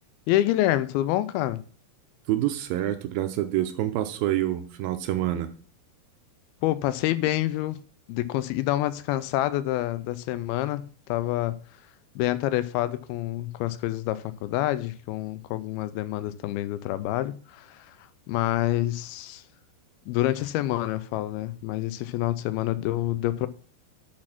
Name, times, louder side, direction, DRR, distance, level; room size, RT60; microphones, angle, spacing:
voice 1, 0.3-1.6 6.6-7.8 8.1-10.8 11.1-11.6 12.2-18.0 18.3-19.4 20.1-23.5, left 14 dB, 85° left, 2.4 m, -27 dB
voice 2, 2.3-5.5, right 13 dB, 80° right, 2.3 m, -27 dB
8.7 x 4.2 x 5.9 m
omnidirectional pair, 4.4 m